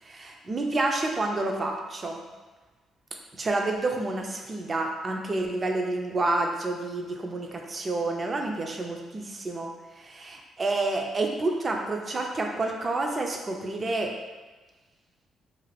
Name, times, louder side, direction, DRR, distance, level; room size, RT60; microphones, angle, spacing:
voice 1, 0.0-2.2 3.4-14.1, right 2 dB, 35° right, 2 dB, 0.4 m, -29 dB
2.5 x 2.4 x 3.2 m, 1.3 s
cardioid pair, 90°, 0 cm